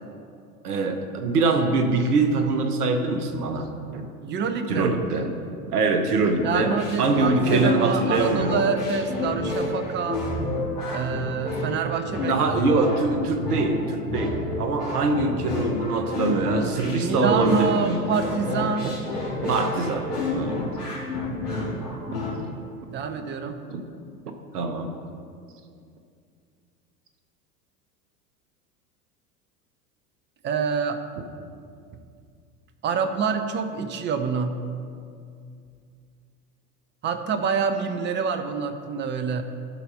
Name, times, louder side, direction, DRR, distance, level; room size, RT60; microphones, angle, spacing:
voice 1, 0.6-3.7 3.9-4.1 4.7-5.4 5.7-8.6 12.2-18.0 18.6-18.9 19.4-20.0 20.3-20.7 21.5-21.7 22.1-22.2 23.7-23.8 24.5-24.9, right 3 dB, 70° right, 6 dB, 1.0 m, -24 dB
voice 2, 4.2-5.0 6.4-10.2 10.9-12.4 17.0-18.9 22.9-23.6 30.4-31.0 32.8-34.6 37.0-39.4, right 5 dB, 25° right, 8 dB, 0.6 m, -26 dB
sound 1, 6.4-22.3, left 2 dB, 80° left, 2.2 m, -29 dB
11.5 x 4.1 x 5.5 m, 2.3 s
figure-of-eight pair, 80°, 47 cm